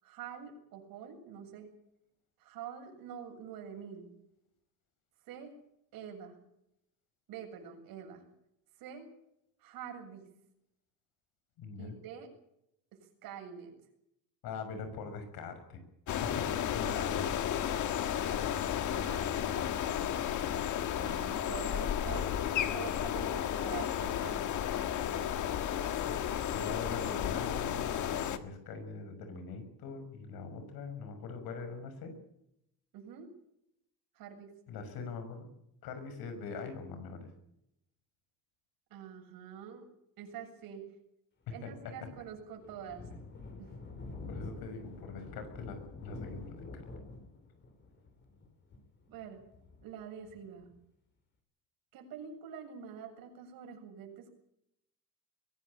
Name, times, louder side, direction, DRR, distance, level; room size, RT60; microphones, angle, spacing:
voice 1, 0.0-1.7 2.4-4.1 5.3-5.5 5.9-6.4 7.3-8.2 8.8-9.0 9.6-10.3 11.8-12.3 12.9-13.7 18.9-19.3 21.0-24.4 32.9-33.3 34.2-34.5 38.9-39.9 40.2-40.9 41.5-43.1 43.6-43.7 49.1-49.4 49.8-50.7 51.9-54.3, right 8 dB, 70° right, 3 dB, 7.5 m, -46 dB
voice 2, 11.6-12.0 14.4-17.2 20.4-20.6 26.0-26.2 26.5-32.2 34.7-35.5 35.8-37.3 41.5-42.1 44.3-46.8, left 4 dB, 80° left, 9 dB, 6.2 m, -43 dB
sound 1, 16.1-28.4, left 9 dB, 55° left, 1.6 m, -33 dB
Thunder, 41.6-50.8, left 3 dB, 30° left, 4.1 m, -47 dB
23.0 x 16.5 x 8.7 m, 0.79 s
cardioid pair, 175°, 36 cm